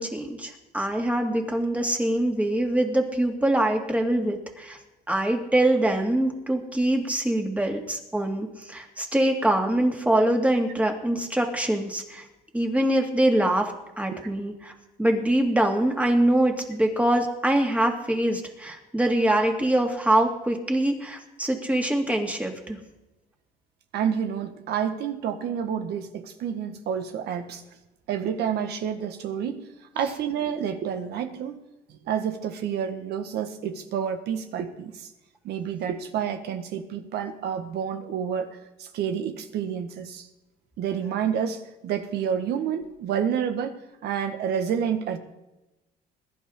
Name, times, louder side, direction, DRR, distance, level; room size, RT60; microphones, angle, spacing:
voice 1, 0.0-4.8 5.1-12.2 12.5-14.7 15.0-22.8, right 1 dB, 10° right, 2 dB, 2.3 m, -24 dB
voice 2, 23.9-27.6 28.1-29.6 29.9-31.6 31.9-35.1 35.4-38.5 38.8-40.3 40.8-45.2, right 8 dB, 75° right, 7 dB, 1.6 m, -29 dB
21.0 x 10.5 x 3.8 m, 1.0 s
cardioid pair, 110°, 17 cm